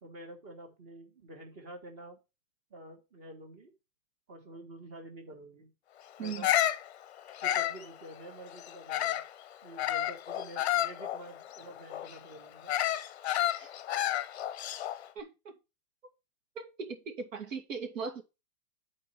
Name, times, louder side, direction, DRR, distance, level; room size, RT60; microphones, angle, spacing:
voice 1, 0.0-2.2 2.7-3.7 4.3-5.7 6.2-6.5 7.4-9.2 9.6-12.7, right 1 dB, 20° right, 1.6 m, -48 dB
Bird vocalization bird call bird song, 6.2-9.3 9.8-15.1, left 12 dB, 50° left, 0.7 m, -31 dB
voice 2, 15.2-15.6 16.6-18.2, right 5 dB, 65° right, 2.2 m, -39 dB
7.6 x 4.5 x 5.8 m
hypercardioid pair, 175°, 42 cm